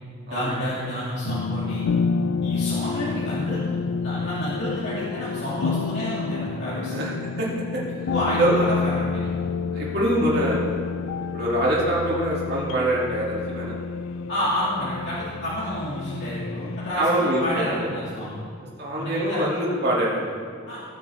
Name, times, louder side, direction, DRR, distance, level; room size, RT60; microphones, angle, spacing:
voice 1, 0.2-1.9 2.4-7.0 8.1-9.3 14.3-18.4 19.0-19.4 20.7-20.8, equal, 55° left, -9 dB, 2.4 m, -29 dB
sound 1, 1.2-17.8, left 5 dB, 80° left, 0.4 m, -29 dB
voice 2, 9.7-10.6 11.3-13.8 17.0-17.9 18.8-20.2, right 1 dB, 50° right, -5 dB, 2.6 m, -24 dB
19.0 x 8.4 x 3.5 m, 2.1 s
head